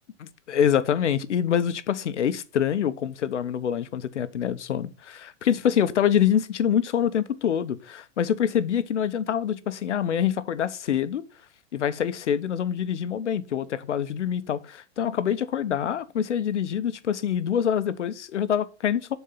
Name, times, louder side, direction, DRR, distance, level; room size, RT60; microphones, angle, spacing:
voice 1, 0.2-11.2 11.7-19.2, left 9 dB, 80° left, 1.1 m, -25 dB
11.5 x 4.6 x 5.5 m
hypercardioid pair, 135°, 35 cm